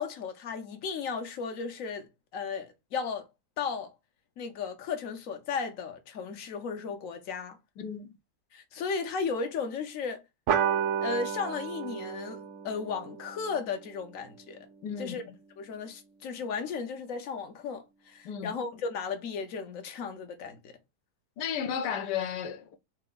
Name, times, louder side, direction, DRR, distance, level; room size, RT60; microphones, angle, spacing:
voice 1, 0.0-3.3 3.6-3.9 4.4-7.6 8.5-10.2 11.0-14.7 15.0-15.2 15.6-20.7, left 5 dB, 60° left, 1.1 m, -35 dB
voice 2, 7.8-8.1 14.8-15.2 18.2-18.5 21.4-22.8, left 8 dB, 85° left, 1.3 m, -33 dB
sound 1, 10.5-15.4, right 8 dB, 70° right, 0.7 m, -33 dB
4.3 x 2.2 x 3.8 m
omnidirectional pair, 1.8 m